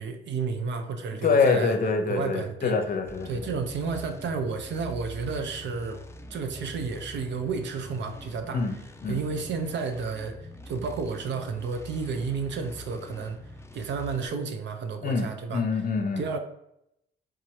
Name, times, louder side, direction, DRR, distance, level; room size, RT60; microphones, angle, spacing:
voice 1, 0.0-1.8 2.1-2.7 3.3-6.0 6.3-8.6 9.1-13.4 13.7-15.6 16.2-16.4, right 5 dB, 65° right, 6 dB, 0.7 m, -31 dB
voice 2, 1.2-3.5 8.5-8.8 9.0-9.2 15.0-16.2, left 4 dB, 45° left, 5 dB, 0.8 m, -25 dB
sound 1, 3.1-14.3, left 1 dB, 15° left, 0.5 m, -44 dB
3.8 x 2.8 x 4.7 m, 0.79 s
cardioid pair, 90°, 20 cm